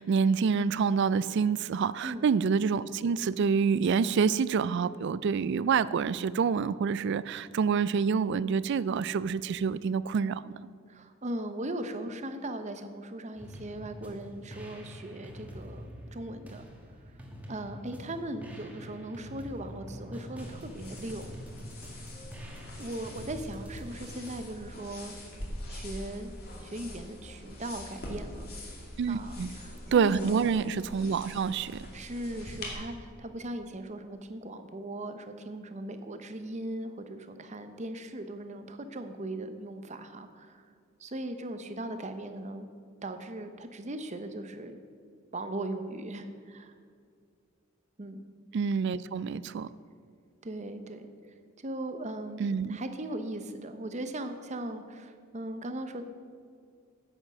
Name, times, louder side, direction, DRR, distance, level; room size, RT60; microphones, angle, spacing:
voice 1, 0.0-10.5 29.0-29.5 29.9-31.9 48.5-49.7 52.4-52.8, right 6 dB, 55° right, 18 dB, 0.3 m, -27 dB
voice 2, 10.9-16.7 17.5-21.3 22.8-25.2 25.7-26.3 26.6-28.5 29.1-30.4 31.9-40.7 41.0-42.7 43.0-44.8 45.3-46.7 48.0-48.2 50.4-51.1 51.6-56.0, right 1 dB, 35° right, 8 dB, 0.8 m, -39 dB
sound 1, 13.4-24.4, equal, 5° right, 1.3 m, -45 dB
sound 2, 20.4-32.7, left 1 dB, 50° left, 2.3 m, -44 dB
9.7 x 8.0 x 6.1 m, 2.2 s
head